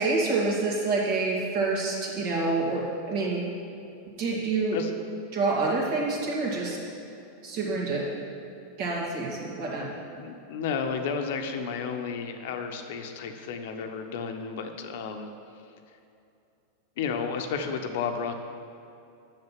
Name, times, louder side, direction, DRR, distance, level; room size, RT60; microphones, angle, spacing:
voice 1, 0.0-3.5 4.2-4.8 5.3-6.8 7.4-8.1 8.8-9.9, right 3 dB, 60° right, -3 dB, 2.4 m, -27 dB
voice 2, 10.2-15.3 17.0-18.3, left 5 dB, 70° left, 5 dB, 0.9 m, -32 dB
6.6 x 6.6 x 7.4 m, 2.7 s
hypercardioid pair, 110°, 0 cm